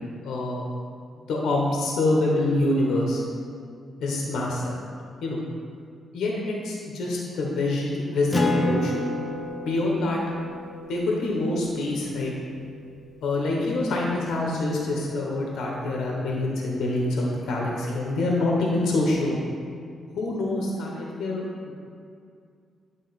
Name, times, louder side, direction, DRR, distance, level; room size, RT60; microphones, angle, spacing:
voice 1, 0.2-0.6 1.3-3.2 4.0-4.8 5.2-5.4 6.1-9.1 9.6-10.2 10.9-12.3 13.2-19.4 20.1-21.7, left 2 dB, 85° left, -2 dB, 1.0 m, -26 dB
Acoustic guitar, 8.3-13.3, left 1 dB, 30° left, 0.8 m, -31 dB
8.7 x 3.7 x 4.1 m, 2.2 s
cardioid pair, 100°, 0 cm